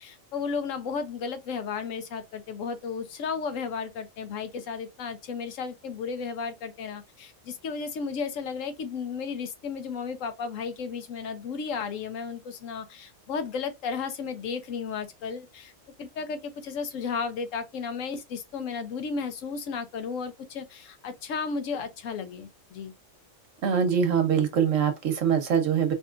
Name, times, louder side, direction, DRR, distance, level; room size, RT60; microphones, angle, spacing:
voice 1, 0.0-15.7 16.0-22.9, left 5 dB, 90° left, 1.1 m, -34 dB
voice 2, 23.6-25.9, right 7 dB, 85° right, 1.3 m, -23 dB
4.7 x 2.8 x 2.5 m
omnidirectional pair, 1.3 m